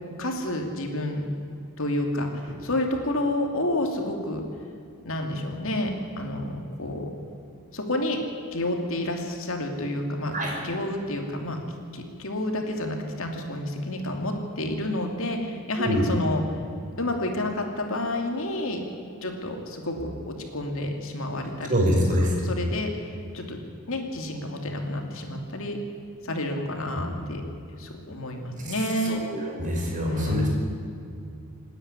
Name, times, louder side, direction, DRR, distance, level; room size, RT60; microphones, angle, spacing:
voice 1, 0.2-1.2 1.8-4.4 5.0-5.9 6.2-7.1 7.7-8.2 8.5-10.3 10.6-11.6 11.9-16.4 17.0-18.8 19.2-21.8 22.2-23.6 23.9-25.8 26.2-27.4 27.8-29.2 30.1-30.5, left 1 dB, 65° left, 3 dB, 2.8 m, -29 dB
voice 2, 21.7-22.3 27.0-27.1 28.6-28.7 29.1-30.5, equal, 35° right, -1 dB, 5.3 m, -25 dB
27.5 x 10.0 x 10.0 m, 2.5 s
head